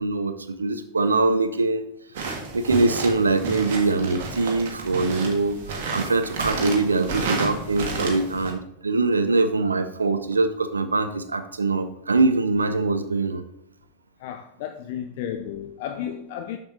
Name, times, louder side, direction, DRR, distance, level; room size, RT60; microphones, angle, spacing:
voice 1, 0.0-1.9 2.2-13.4, right 3 dB, 75° right, 0.4 m, -23 dB
sound 1, 2.2-8.5, right 4 dB, 55° right, 1.5 m, -31 dB
voice 2, 14.2-16.6, left 9 dB, 50° left, 0.4 m, -33 dB
6.9 x 6.7 x 3.2 m
figure-of-eight pair, 90°, 0 cm